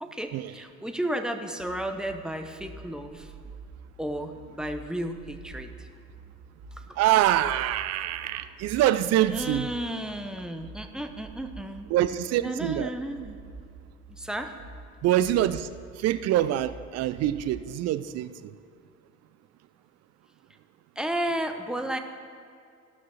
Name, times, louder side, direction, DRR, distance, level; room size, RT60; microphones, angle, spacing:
voice 1, 0.0-3.3 4.0-5.9 6.9-7.0 9.3-11.9 12.4-13.4 14.1-14.5 21.0-22.0, right 1 dB, ahead, 5 dB, 0.7 m, -33 dB
sound 1, 1.6-17.6, right 4 dB, 55° right, 1.1 m, -46 dB
voice 2, 7.0-9.7 11.9-12.9 15.0-15.7 16.0-18.5, right 13 dB, 40° right, 13 dB, 0.4 m, -25 dB
15.0 x 6.1 x 4.3 m, 2.3 s
hypercardioid pair, 65°, 42 cm